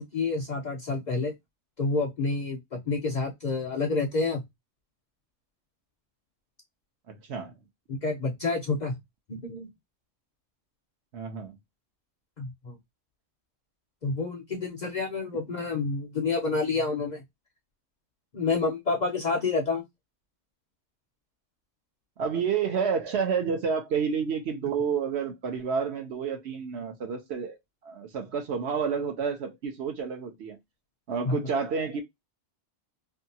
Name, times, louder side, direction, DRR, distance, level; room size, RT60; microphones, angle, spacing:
voice 1, 0.0-1.3 1.8-4.4 7.9-9.0 9.3-9.7 12.4-12.7 14.0-17.2 18.3-19.8 31.3-31.4, left 3 dB, 50° left, 0.5 m, -28 dB
voice 2, 7.1-7.5 11.1-11.5 22.2-27.6 27.8-30.6 31.1-32.0, right 6 dB, 65° right, 1.0 m, -29 dB
2.7 x 2.4 x 2.6 m
omnidirectional pair, 1.2 m